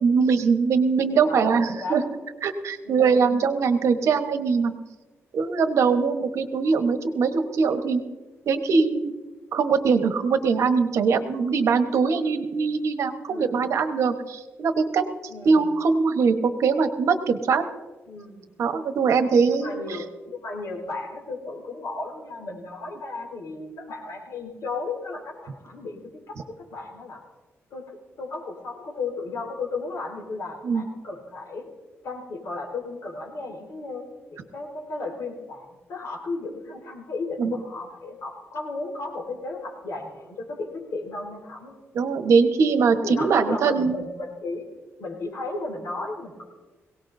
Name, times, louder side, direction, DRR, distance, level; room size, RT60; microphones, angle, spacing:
voice 1, 0.0-2.0 2.4-4.7 5.3-8.0 8.5-9.1 9.5-15.0 15.4-17.6 18.6-19.7 30.6-30.8 37.4-37.5 41.9-44.0, right 5 dB, 75° right, 7 dB, 1.2 m, -22 dB
voice 2, 1.1-2.1 2.8-3.3 12.1-12.3 13.3-13.7 15.3-15.7 18.1-18.5 19.4-26.0 26.3-27.2 27.7-31.7 32.0-34.0 34.3-41.8 43.0-46.5, left 3 dB, 75° left, 0 dB, 4.5 m, -35 dB
22.0 x 18.0 x 2.7 m, 1.2 s
cardioid pair, 115°, 5 cm